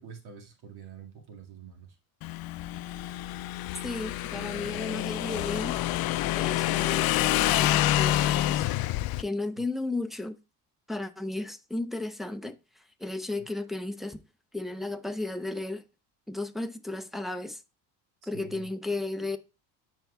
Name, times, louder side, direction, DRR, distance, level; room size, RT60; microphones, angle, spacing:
voice 1, 0.0-2.0 13.4-13.5 18.2-18.7, right 7 dB, 60° right, 2.1 m, -47 dB
Motorcycle / Engine, 2.2-9.2, left 15 dB, 55° left, 0.5 m, -27 dB
voice 2, 3.8-5.8 6.4-8.7 9.2-10.4 10.9-14.2 14.5-15.8 16.3-17.6 18.3-19.4, left 2 dB, ahead, 0.6 m, -34 dB
12.5 x 4.6 x 2.3 m
cardioid pair, 100°, 43 cm